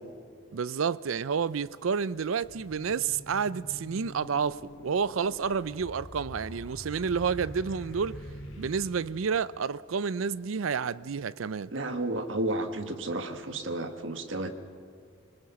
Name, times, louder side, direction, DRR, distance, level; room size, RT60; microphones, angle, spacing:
voice 1, 0.5-8.2 8.6-11.7, right 6 dB, 85° right, 0.5 m, -30 dB
sound 1, 2.1-9.7, equal, 80° left, 3.8 m, -45 dB
voice 2, 11.7-14.5, right 2 dB, 70° right, 1.6 m, -32 dB
26.0 x 20.0 x 5.9 m
head